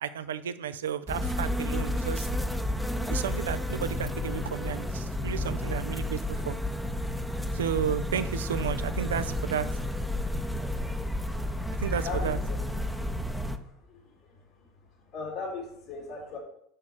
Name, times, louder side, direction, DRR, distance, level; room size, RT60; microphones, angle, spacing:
voice 1, 0.0-2.3 3.1-6.6 7.5-9.7 11.8-12.4, right 8 dB, 80° right, 13 dB, 0.4 m, -32 dB
sound 1, 1.1-13.6, left 1 dB, ahead, 0.7 m, -31 dB
voice 2, 12.0-12.6 13.2-14.4 15.1-16.4, left 4 dB, 65° left, -4 dB, 2.3 m, -39 dB
6.5 x 5.9 x 4.4 m, 0.72 s
hypercardioid pair, 80°, 0 cm